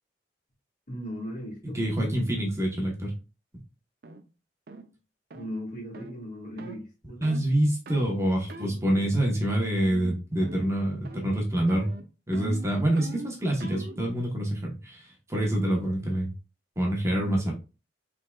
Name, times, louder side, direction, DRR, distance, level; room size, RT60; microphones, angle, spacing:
voice 1, 0.9-2.2 5.3-7.2 8.6-9.2 17.1-17.5, equal, 45° left, -1 dB, 2.1 m, -39 dB
voice 2, 1.7-3.1 3.5-3.6 7.2-11.9 12.3-16.3 16.8-17.5, right 1 dB, 15° right, -1 dB, 1.0 m, -26 dB
sound 1, 4.0-4.2 4.7-4.9 5.3-5.5 5.9-6.1 6.6-6.8 7.2-7.5 7.9-8.1 8.5-8.7 9.1-9.5 9.8-10.1 10.4-10.8 11.0-11.4 11.7-14.0, right 3 dB, 60° right, 0.5 m, -42 dB
5.5 x 3.6 x 2.3 m, 0.31 s
head